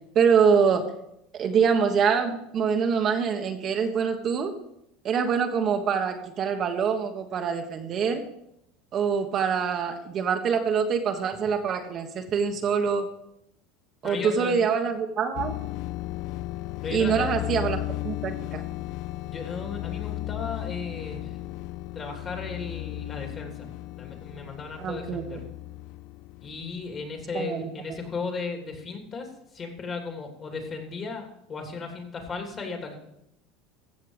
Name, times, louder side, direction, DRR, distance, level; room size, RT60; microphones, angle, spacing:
voice 1, 0.1-0.9 1.3-4.5 5.0-8.2 8.9-13.1 14.0-15.6 16.9-17.8 18.0-18.6 24.8-25.2 27.3-27.7, right 6 dB, 40° right, 4 dB, 1.3 m, -25 dB
voice 2, 14.0-14.6 16.8-17.3 19.3-21.4 21.9-23.7 24.0-25.4 26.4-32.9, left 4 dB, 35° left, 3 dB, 3.0 m, -36 dB
sound 1, 15.4-27.0, left 18 dB, 65° left, 0.3 m, -35 dB
15.0 x 6.6 x 5.0 m, 0.79 s
supercardioid pair, 105°, 0 cm